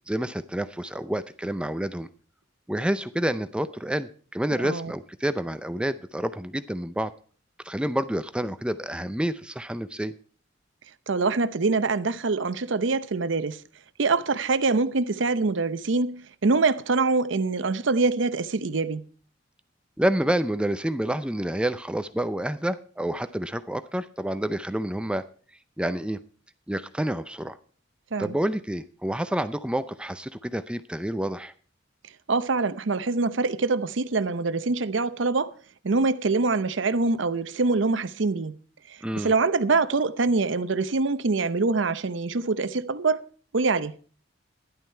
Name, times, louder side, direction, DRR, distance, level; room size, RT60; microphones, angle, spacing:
voice 1, 0.1-2.1 2.7-7.1 7.6-10.1 20.0-25.2 25.8-26.2 26.7-27.6 28.2-31.5 39.0-39.3, right 1 dB, 5° right, 0.5 m, -28 dB
voice 2, 11.1-13.6 14.0-19.0 28.1-28.4 32.3-35.5 35.8-38.6 38.9-43.2 43.5-43.9, right 3 dB, 75° right, 0.7 m, -24 dB
12.5 x 11.0 x 4.4 m
head